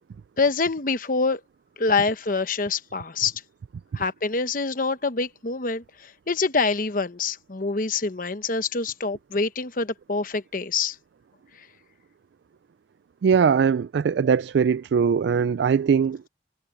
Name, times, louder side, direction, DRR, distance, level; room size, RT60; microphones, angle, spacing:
voice 1, 0.4-1.4 1.8-3.4 3.9-11.0 11.6-11.7, left 4 dB, 50° left, 1.0 m, -26 dB
voice 2, 13.2-16.2, right 6 dB, 75° right, 0.3 m, -21 dB
head